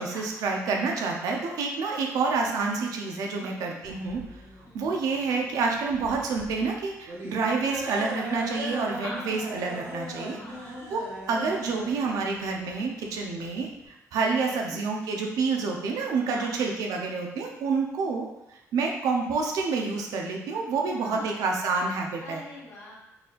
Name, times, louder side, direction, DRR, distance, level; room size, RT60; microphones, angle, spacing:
voice 1, 0.0-4.2 4.7-10.4 10.9-18.3 18.7-22.4, right 4 dB, 90° right, 1 dB, 0.7 m, -28 dB
voice 2, 3.4-3.8 4.6-4.9 9.0-9.3 10.4-10.8 14.5-14.8 16.3-16.6 20.5-20.6 20.9-21.3 22.2-22.9, left 2 dB, 65° left, -7 dB, 1.5 m, -43 dB
sound 1, 3.8-13.9, right 1 dB, 60° right, 1.3 m, -39 dB
4.2 x 4.1 x 2.5 m, 0.92 s
cardioid pair, 120°, 6 cm